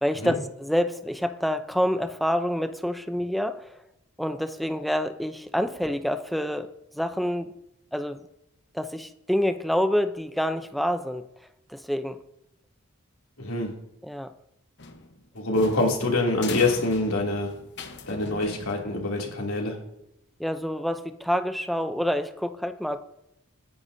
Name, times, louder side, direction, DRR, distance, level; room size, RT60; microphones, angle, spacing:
voice 1, 0.0-3.8 4.2-7.5 7.9-8.2 8.7-11.3 11.7-12.2 14.0-14.3 20.4-23.0, equal, ahead, 9 dB, 0.6 m, -27 dB
voice 2, 13.4-13.7 15.3-17.5 18.1-19.8, left 2 dB, 75° left, -1 dB, 2.9 m, -25 dB
sound 1, 14.8-19.2, left 4 dB, 55° left, 1.1 m, -40 dB
24.5 x 10.0 x 2.8 m, 0.87 s
head